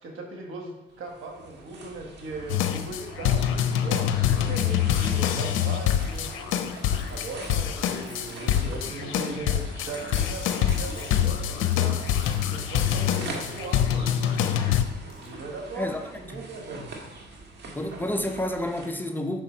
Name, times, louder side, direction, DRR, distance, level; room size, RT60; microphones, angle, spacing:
voice 1, 0.0-6.3 7.1-12.0 12.5-14.3 15.2-15.9 16.3-16.9, right 2 dB, 85° right, 1 dB, 1.4 m, -38 dB
sound 1, 0.9-18.9, right 3 dB, 60° right, 1.5 m, -43 dB
sound 2, 2.5-14.8, left 10 dB, 90° left, 0.5 m, -25 dB
sound 3, 5.9-7.6 8.0-8.8 9.1-9.2 9.7-13.8 14.1-14.4 14.9-15.3, left 3 dB, 45° left, 1.9 m, -48 dB
voice 2, 17.7-19.4, left 1 dB, 10° left, 5 dB, 0.7 m, -29 dB
6.4 x 5.2 x 4.3 m, 1.1 s
cardioid pair, 90°, 20 cm